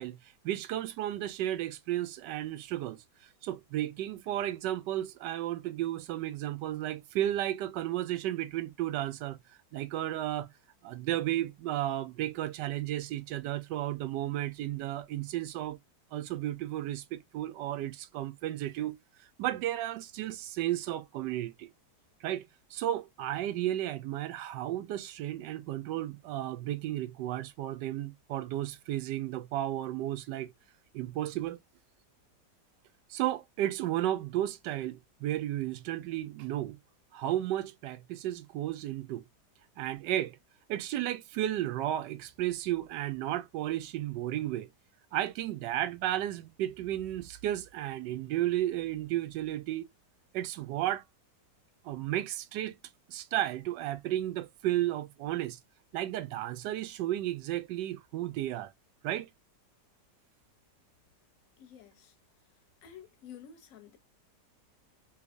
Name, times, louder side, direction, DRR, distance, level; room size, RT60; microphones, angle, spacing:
voice 1, 0.0-9.4 9.7-10.5 10.8-15.8 16.1-21.7 22.2-22.5 22.7-30.5 30.9-31.6 33.1-36.8 37.1-39.2 39.8-40.4 40.7-44.7 45.1-49.9 50.3-51.0 51.8-52.8 53.1-55.6 55.9-58.7 59.0-59.3, right 13 dB, 85° right, 1.2 m, -33 dB
voice 2, 61.6-62.2 62.8-64.0, left 8 dB, 60° left, 1.1 m, -51 dB
3.4 x 3.2 x 2.4 m
omnidirectional pair, 1.8 m